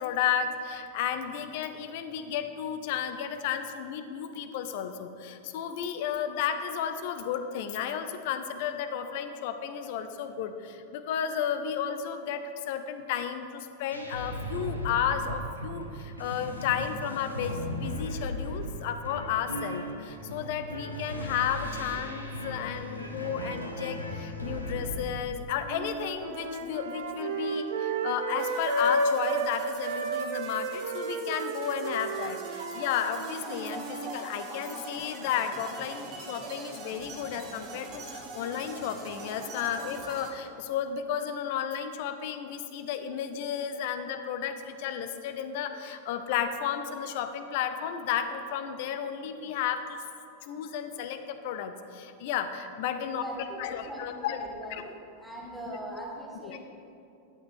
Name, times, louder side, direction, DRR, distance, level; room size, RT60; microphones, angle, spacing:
voice 1, 0.0-50.0 50.4-53.2 53.6-54.4 54.7-54.8 55.7-55.8 56.4-56.6, left 8 dB, 50° left, 9 dB, 0.7 m, -33 dB
sound 1, 13.9-25.1, equal, 90° left, 1.2 m, -37 dB
sound 2, 25.7-29.5 29.8-34.2, right 3 dB, 60° right, 0.9 m, -32 dB
sound 3, 28.4-40.3, right 3 dB, 40° right, 1.6 m, -44 dB
voice 2, 53.0-56.6, right 1 dB, ahead, -3 dB, 1.8 m, -41 dB
12.0 x 8.7 x 4.4 m, 2.7 s
figure-of-eight pair, 90°, 0 cm